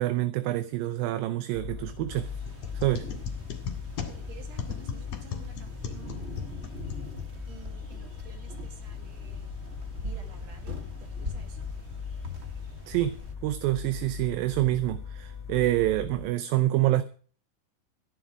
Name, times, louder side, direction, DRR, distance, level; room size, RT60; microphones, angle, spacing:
voice 1, 0.0-2.3 2.7-3.1 12.9-17.0, right 15 dB, 80° right, 2.5 m, -27 dB
sound 1, 1.5-16.3, left 7 dB, 10° left, 3.3 m, -40 dB
sound 2, 2.1-13.3, left 1 dB, 35° right, 1.0 m, -42 dB
sound 3, 2.4-7.6, left 7 dB, 50° left, 2.8 m, -39 dB
voice 2, 4.1-6.3 7.5-9.5 10.0-11.7, right 6 dB, 65° right, 3.9 m, -52 dB
14.5 x 11.0 x 4.9 m
omnidirectional pair, 4.2 m